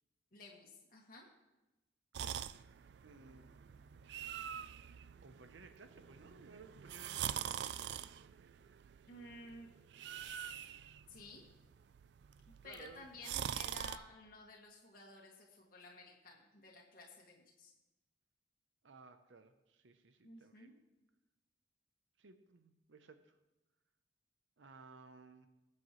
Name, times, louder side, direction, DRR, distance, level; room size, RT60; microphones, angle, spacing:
voice 1, 0.3-1.3 9.1-9.7 10.3-10.6 11.1-11.4 12.6-17.7 20.2-20.7, left 2 dB, 50° left, -2 dB, 1.9 m, -54 dB
sound 1, 2.1-14.0, right 9 dB, 65° right, 0.3 m, -45 dB
voice 2, 2.3-2.7 3.0-3.5 5.2-7.4 12.6-13.1 18.8-20.7 22.2-23.3 24.6-25.5, right 4 dB, 85° right, 8 dB, 0.7 m, -58 dB
20.0 x 7.8 x 3.1 m, 1.0 s
head